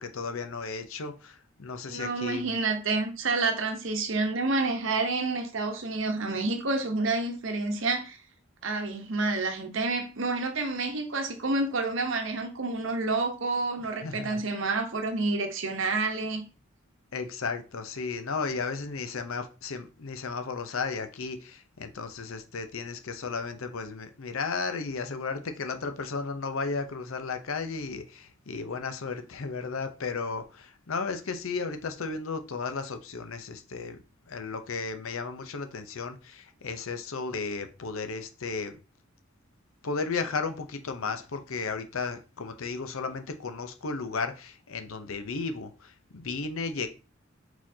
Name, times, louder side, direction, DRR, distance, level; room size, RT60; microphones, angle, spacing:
voice 1, 0.0-2.6 14.0-14.4 17.1-38.8 39.8-46.9, left 4 dB, 80° left, 0.7 m, -34 dB
voice 2, 1.9-8.2 8.6-16.4, right 3 dB, 65° right, 0.9 m, -29 dB
4.5 x 4.3 x 2.7 m
head